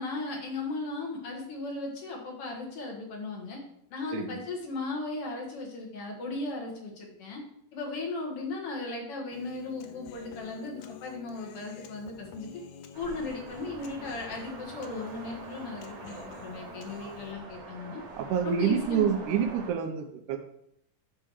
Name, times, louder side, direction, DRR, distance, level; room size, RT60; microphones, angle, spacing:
voice 1, 0.0-3.6 3.9-7.4 7.7-12.6 13.0-18.0 18.4-19.2, left 3 dB, 50° left, 0 dB, 2.2 m, -36 dB
Human voice, 9.3-17.3, left 7 dB, 75° left, 1.7 m, -49 dB
sound 1, 12.9-19.7, right 3 dB, 55° right, 1.9 m, -45 dB
voice 2, 18.2-20.4, right 8 dB, 75° right, 4 dB, 2.0 m, -28 dB
9.2 x 3.4 x 6.3 m, 0.74 s
omnidirectional pair, 3.9 m